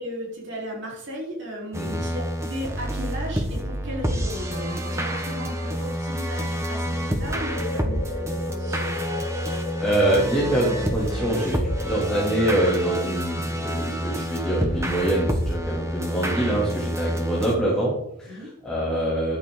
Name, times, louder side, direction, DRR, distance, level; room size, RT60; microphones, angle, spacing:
voice 1, 0.0-8.9 18.3-18.5, equal, 55° right, -4 dB, 4.4 m, -35 dB
sound 1, 1.7-17.6, equal, 15° right, 1.5 m, -28 dB
sound 2, 7.2-12.2, left 2 dB, 90° left, 1.7 m, -34 dB
voice 2, 9.4-19.4, right 1 dB, 5° left, -7 dB, 3.0 m, -25 dB
14.0 x 11.0 x 4.0 m, 0.80 s
head